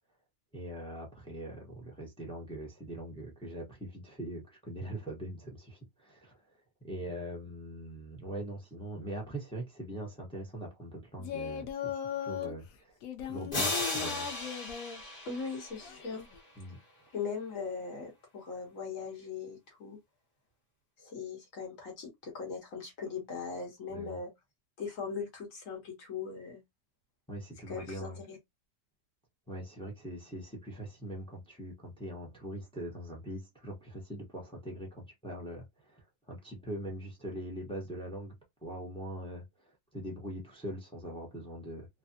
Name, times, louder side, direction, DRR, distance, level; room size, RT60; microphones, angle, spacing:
voice 1, 0.5-6.4 6.8-14.3 16.6-16.8 23.9-24.2 27.3-28.2 29.5-38.3 38.6-41.9, right 1 dB, 5° left, 0.4 m, -42 dB
Singing, 11.2-12.5 13.0-15.0 15.8-16.4, left 8 dB, 70° left, 0.8 m, -38 dB
sound 1, 13.5-16.4, left 2 dB, 35° left, 1.3 m, -36 dB
voice 2, 15.2-16.2 17.1-20.0 21.0-24.3 24.8-26.6 27.7-28.4, left 5 dB, 50° left, 1.4 m, -39 dB
3.3 x 2.2 x 2.7 m
omnidirectional pair, 1.9 m